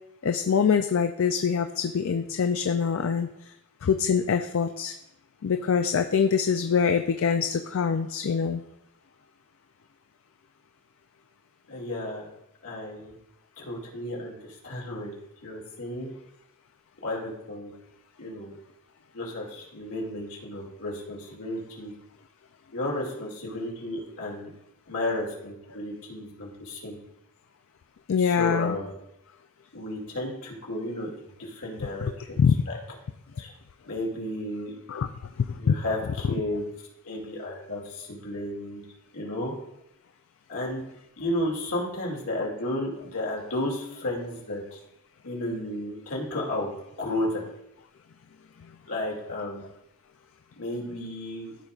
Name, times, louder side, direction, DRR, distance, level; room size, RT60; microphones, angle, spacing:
voice 1, 0.2-3.3 3.8-4.9 5.4-8.6 28.1-28.8 32.0-32.1 32.4-32.6 34.9-35.1 35.4-35.7, left 6 dB, 60° left, 7 dB, 0.4 m, -24 dB
voice 2, 11.7-12.3 12.6-13.1 13.6-15.1 15.4-16.1 17.0-17.7 18.2-18.6 19.1-21.9 22.7-24.5 24.9-27.0 28.2-28.9 29.7-31.1 31.4-32.3 32.7-32.8 33.4-33.5 33.9-34.7 35.6-36.6 37.0-38.8 39.1-39.5 40.5-40.8 41.2-44.8 45.2-46.7 47.0-47.4 48.8-49.6 50.6-51.6, left 1 dB, 80° left, -2 dB, 2.3 m, -33 dB
14.0 x 5.1 x 2.4 m, 0.82 s
head